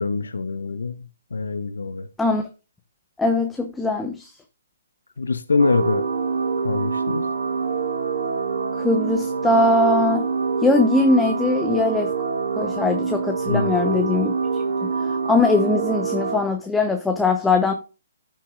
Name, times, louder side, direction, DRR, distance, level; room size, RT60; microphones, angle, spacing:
voice 1, 0.0-2.1 5.2-6.0 6.6-7.3 13.5-13.8, left 4 dB, 75° left, 0.8 m, -24 dB
voice 2, 3.2-4.3 8.8-10.3 10.6-12.1 12.6-14.3 14.8-17.7, left 3 dB, 5° left, 0.9 m, -21 dB
sound 1, 5.6-16.4, right 5 dB, 70° right, 1.6 m, -25 dB
14.5 x 5.7 x 2.4 m
figure-of-eight pair, 135°, 0 cm